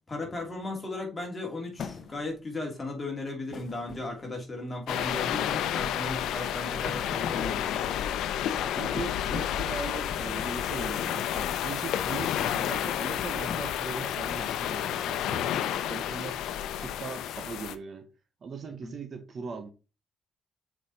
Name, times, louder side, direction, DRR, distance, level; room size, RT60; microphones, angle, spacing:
voice 1, 0.1-7.9 18.8-19.0, left 2 dB, 25° left, 3.0 m, -36 dB
sound 1, 1.8-2.5 3.5-4.4 5.4-6.1 6.7-7.5 7.9-8.1 9.0-9.7 10.1-10.7 11.4-11.9 12.3-12.6 13.1-13.9, left 6 dB, 55° left, 0.9 m, -42 dB
sound 2, 4.9-17.7, left 10 dB, 85° left, 0.7 m, -30 dB
voice 2, 8.7-15.6 15.9-16.4 16.8-18.1 18.4-19.7, right 5 dB, 50° right, 1.2 m, -39 dB
6.6 x 5.0 x 4.2 m
cardioid pair, 90°, 0 cm